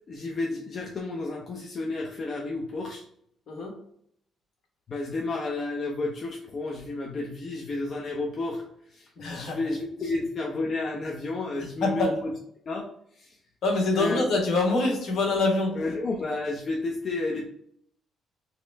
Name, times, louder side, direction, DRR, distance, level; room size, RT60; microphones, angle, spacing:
voice 1, 0.1-3.0 4.9-8.6 8.9-12.3 12.7-12.8 13.2-13.4 13.9-14.2 15.7-17.4, left 2 dB, 45° left, -1 dB, 0.6 m, -31 dB
voice 2, 9.2-9.6 11.8-12.1 13.6-15.8, left 2 dB, 70° left, 0 dB, 1.3 m, -25 dB
3.1 x 2.9 x 3.3 m, 0.69 s
cardioid pair, 90°, 0 cm